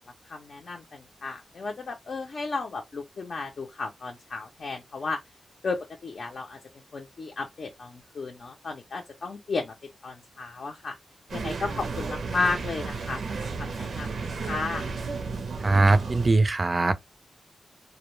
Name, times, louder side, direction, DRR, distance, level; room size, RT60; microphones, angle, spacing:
voice 1, 0.3-5.2 5.6-6.6 6.9-9.7 10.0-11.0 11.3-14.9, left 4 dB, 60° left, 0.5 m, -33 dB
sound 1, 11.3-16.3, right 4 dB, 90° right, 0.5 m, -33 dB
voice 2, 15.6-16.9, right 3 dB, 30° right, 0.4 m, -21 dB
2.2 x 2.1 x 3.0 m
wide cardioid pair, 140°, 0 cm